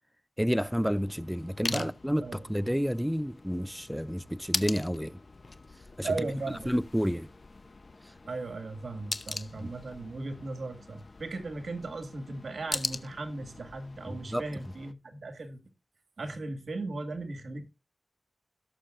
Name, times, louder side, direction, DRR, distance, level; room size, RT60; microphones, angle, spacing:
voice 1, 0.4-5.2 6.0-6.1 6.7-7.3 8.1-8.2 9.6-9.7 14.1-14.4, equal, ahead, 0.4 m, -30 dB
sound 1, 0.6-14.9, left 3 dB, 55° left, 0.8 m, -41 dB
voice 2, 6.0-6.7 8.3-15.6 16.2-17.7, right 3 dB, 85° right, 2.0 m, -37 dB
17.0 x 6.8 x 2.6 m
wide cardioid pair, 60°, 0 cm